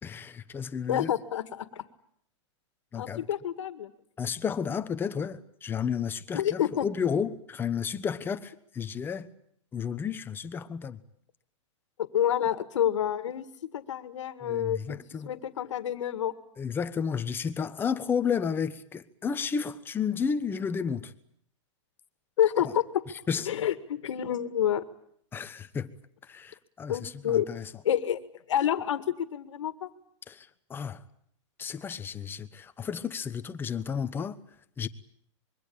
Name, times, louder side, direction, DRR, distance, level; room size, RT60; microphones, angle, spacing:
voice 1, 0.0-1.1 2.9-3.2 4.2-9.3 9.7-11.0 14.4-15.3 16.6-21.1 22.6-22.7 23.3-23.5 25.3-25.9 26.2-27.7 30.3-31.0 31.6-34.4 34.8-34.9, left 6 dB, 15° left, 1.2 m, -32 dB
voice 2, 0.9-1.8 3.0-3.9 6.3-6.8 12.1-13.5 13.7-15.0 15.3-16.3 22.4-23.0 23.5-24.9 26.9-27.5 27.8-28.2 28.5-29.9, left 10 dB, 80° left, 2.0 m, -28 dB
26.0 x 23.0 x 8.7 m
hypercardioid pair, 150°, 15 cm